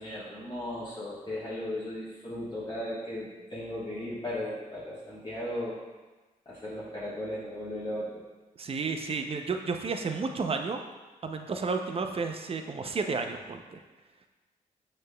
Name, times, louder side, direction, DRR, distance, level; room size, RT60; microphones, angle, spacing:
voice 1, 0.0-5.8 6.4-8.2, left 1 dB, 30° left, -10 dB, 1.2 m, -36 dB
voice 2, 8.6-10.8 11.2-13.8, right 4 dB, 40° right, 5 dB, 0.5 m, -32 dB
6.3 x 3.2 x 2.2 m, 1.2 s
cardioid pair, 60°, 16 cm